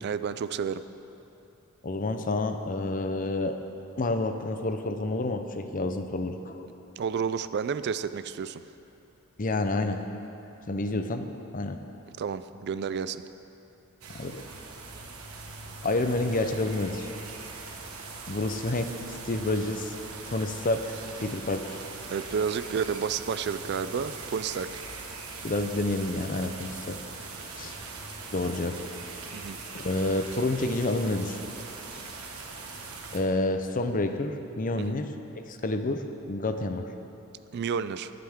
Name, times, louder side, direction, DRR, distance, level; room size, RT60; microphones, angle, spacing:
voice 1, 0.0-0.8 7.0-8.6 12.2-13.2 19.3-19.4 22.1-24.8 29.3-29.6 34.7-35.0 37.5-38.1, right 6 dB, 50° right, 13 dB, 0.3 m, -31 dB
voice 2, 1.8-3.6 4.0-6.7 9.4-10.0 10.7-11.3 11.5-11.8 14.1-14.4 15.8-17.1 18.3-18.9 19.2-19.9 20.3-21.8 25.4-27.0 27.6-27.8 28.3-28.8 29.7-31.7 33.1-35.1 35.4-36.9, left 2 dB, 40° left, 7 dB, 0.6 m, -29 dB
sound 1, 14.0-33.2, right 4 dB, 90° right, 1.3 m, -41 dB
22.0 x 7.7 x 3.6 m, 3.0 s
head